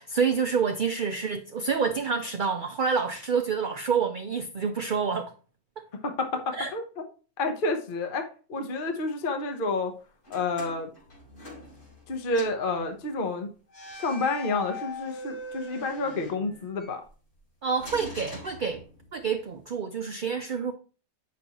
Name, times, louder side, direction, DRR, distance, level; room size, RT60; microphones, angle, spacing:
voice 1, 0.0-5.3 5.8-5.9 6.6-6.7 17.6-18.8 19.1-20.7, right 6 dB, 50° right, 0.6 m, -28 dB
voice 2, 6.0-6.8 7.4-9.9 10.3-10.9 12.1-13.5 14.0-17.0, left 3 dB, 45° left, 1.0 m, -29 dB
sound 1, 10.2-12.1 12.3-12.7 13.7-16.9 17.8-19.2, left 1 dB, 65° left, 3.3 m, -42 dB
8.6 x 6.2 x 2.9 m
omnidirectional pair, 1.4 m